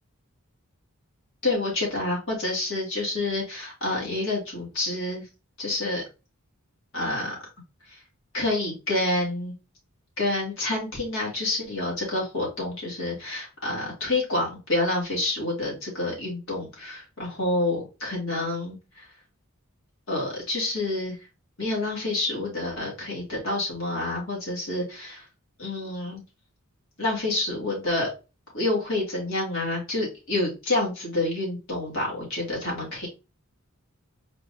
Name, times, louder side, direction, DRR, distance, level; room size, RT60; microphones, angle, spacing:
voice 1, 1.4-5.3 5.6-6.0 6.9-7.3 7.9-8.0 8.3-9.5 10.2-19.1 20.1-21.2 21.6-25.2 25.6-26.2 27.0-28.1 28.5-33.1, left 2 dB, 65° left, -4 dB, 2.3 m, -28 dB
4.4 x 2.7 x 3.6 m, 0.29 s
head